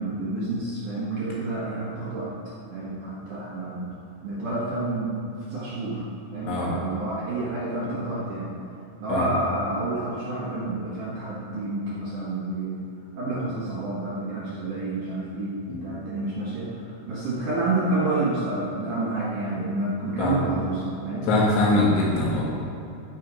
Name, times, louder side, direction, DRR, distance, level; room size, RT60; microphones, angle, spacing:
voice 1, 0.0-2.3 2.7-3.9 4.2-5.1 5.5-6.1 6.3-8.5 9.0-12.8 13.2-15.6 15.8-21.3, right 2 dB, 65° right, -7 dB, 2.1 m, -29 dB
voice 2, 21.3-22.5, left 2 dB, 75° left, -4 dB, 3.7 m, -22 dB
15.5 x 6.2 x 5.0 m, 2.6 s
omnidirectional pair, 5.7 m